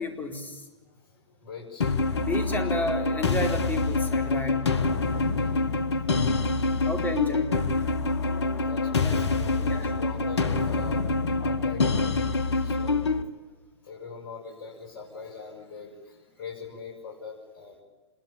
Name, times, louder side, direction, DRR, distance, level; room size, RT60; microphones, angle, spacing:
voice 1, 0.0-0.6 2.2-4.7 6.8-7.6 8.9-9.3 9.6-9.9, left 2 dB, 10° left, 4 dB, 4.3 m, -32 dB
voice 2, 0.8-2.1 5.0-6.9 7.8-13.3 13.8-17.8, left 5 dB, 50° left, 0 dB, 6.8 m, -43 dB
sound 1, 1.8-13.2, left 3 dB, 75° left, 1.8 m, -26 dB
26.5 x 21.5 x 8.9 m, 1.2 s
figure-of-eight pair, 105°, 14 cm